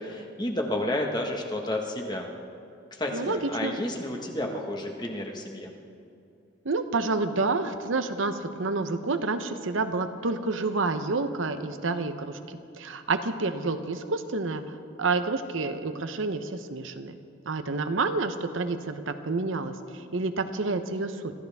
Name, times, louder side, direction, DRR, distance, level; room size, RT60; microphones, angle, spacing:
voice 1, 0.0-2.3 2.9-5.7, left 1 dB, 20° left, 1 dB, 1.4 m, -31 dB
voice 2, 3.1-3.7 6.6-14.6 15.0-17.1 17.5-21.3, right 3 dB, 85° right, 9 dB, 0.8 m, -29 dB
25.0 x 14.0 x 3.5 m, 2.5 s
head